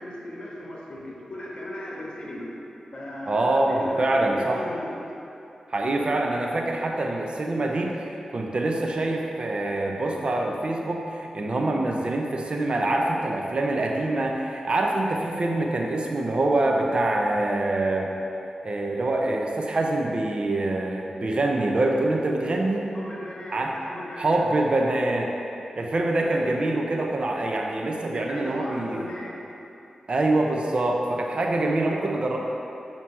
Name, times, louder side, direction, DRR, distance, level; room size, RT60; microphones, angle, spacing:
voice 1, 0.0-2.5 2.9-5.0 22.9-24.4 26.2-26.7 28.1-29.4, left 1 dB, 50° left, -4 dB, 1.3 m, -37 dB
voice 2, 3.3-4.6 5.7-7.9 8.3-18.1 18.6-22.9 23.5-23.7 24.2-25.3 25.8-29.1 30.1-32.4, right 2 dB, 50° right, 1 dB, 0.7 m, -25 dB
7.5 x 3.0 x 5.5 m, 2.8 s
cardioid pair, 65°, 2 cm